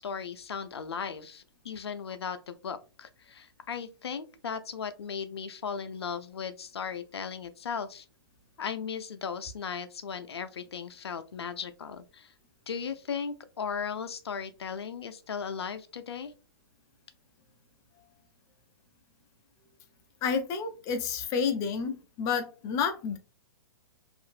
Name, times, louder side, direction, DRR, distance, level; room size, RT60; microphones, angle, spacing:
voice 1, 0.0-8.0 8.6-12.3 12.7-16.3, left 6 dB, 85° left, 0.4 m, -37 dB
voice 2, 20.2-23.2, left 6 dB, 25° left, 0.4 m, -30 dB
2.7 x 2.5 x 2.4 m
hypercardioid pair, 140°, 13 cm